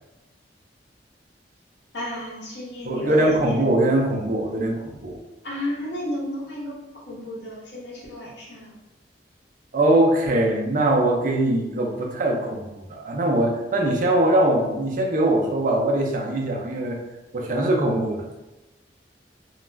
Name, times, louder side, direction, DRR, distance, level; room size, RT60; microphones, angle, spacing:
voice 1, 1.9-3.6 5.4-8.7, left 1 dB, 75° left, -5 dB, 0.9 m, -32 dB
voice 2, 2.8-5.2 9.7-17.0 17.3-18.2, right 1 dB, 50° right, 0 dB, 0.4 m, -22 dB
2.3 x 2.1 x 3.2 m, 1.0 s
head